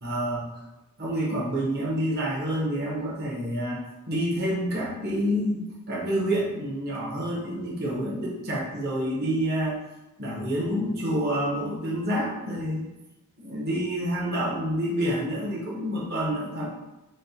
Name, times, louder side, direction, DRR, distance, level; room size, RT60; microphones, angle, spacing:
voice 1, 0.0-0.5 1.0-3.8 4.1-9.8 10.2-12.9 13.4-16.7, equal, 50° right, -5 dB, 0.9 m, -28 dB
6.3 x 2.1 x 2.8 m, 1.0 s
head